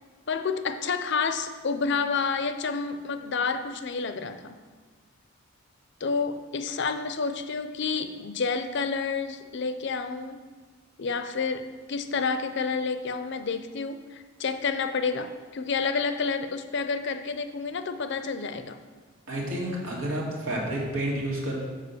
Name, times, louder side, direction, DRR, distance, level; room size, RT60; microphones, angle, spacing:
voice 1, 0.3-4.5 6.0-10.4 11.0-18.8, left 5 dB, 55° left, 9 dB, 0.5 m, -29 dB
voice 2, 19.3-21.6, right 1 dB, 90° right, -3 dB, 2.2 m, -30 dB
6.7 x 5.0 x 7.0 m, 1.5 s
head